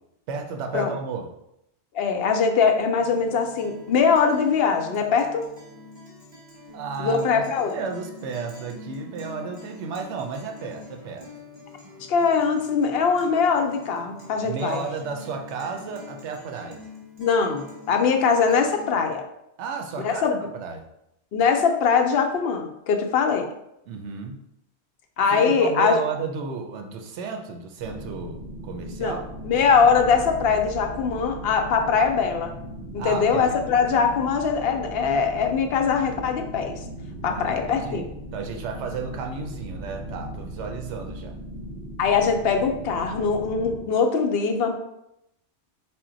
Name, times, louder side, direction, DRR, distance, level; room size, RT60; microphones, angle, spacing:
voice 1, 0.3-1.3 6.7-11.3 14.4-16.8 19.6-20.8 23.9-24.3 25.3-29.3 33.0-33.6 37.2-41.3, right 5 dB, 80° right, 4 dB, 0.9 m, -33 dB
voice 2, 1.9-5.5 7.0-7.7 12.1-14.8 17.2-19.2 20.0-20.3 21.3-23.5 25.2-26.0 29.0-29.2 29.4-32.5 32.9-36.7 37.2-38.0 42.0-44.8, left 5 dB, 65° left, 5 dB, 0.7 m, -22 dB
Guitar, 2.9-19.0, left 3 dB, 25° right, 1.0 m, -44 dB
sound 1, 27.8-43.8, right 1 dB, 45° right, 1.1 m, -38 dB
4.3 x 2.0 x 3.8 m, 0.82 s
omnidirectional pair, 1.2 m